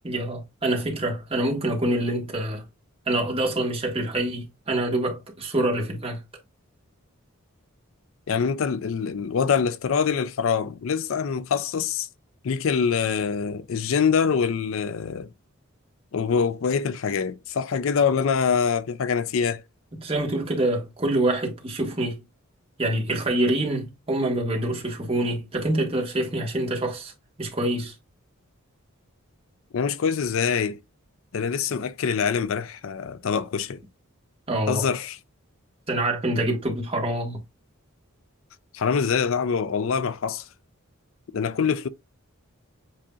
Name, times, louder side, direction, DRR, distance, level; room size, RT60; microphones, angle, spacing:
voice 1, 0.0-2.6 3.1-6.2 19.9-22.2 22.8-27.1 27.4-27.9 34.5-34.9 35.9-37.4, right 1 dB, 25° right, 1.4 m, -26 dB
voice 2, 8.3-12.1 12.4-15.3 16.1-19.6 29.7-30.8 31.3-33.8 34.7-35.2 38.7-40.4 41.3-41.9, left 6 dB, 65° left, 0.4 m, -24 dB
7.5 x 2.8 x 2.4 m
head